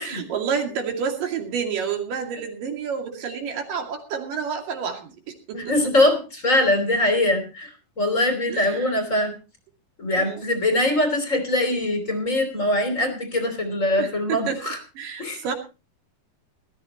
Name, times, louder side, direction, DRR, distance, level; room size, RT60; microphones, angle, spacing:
voice 1, 0.0-5.7 8.5-9.0 10.2-10.4 13.9-14.6 15.0-15.5, right 6 dB, 65° right, 3 dB, 4.0 m, -29 dB
voice 2, 5.5-9.3 10.0-14.8 15.2-15.4, left 1 dB, 20° left, 6 dB, 3.0 m, -22 dB
19.5 x 14.0 x 3.0 m, 0.31 s
omnidirectional pair, 4.3 m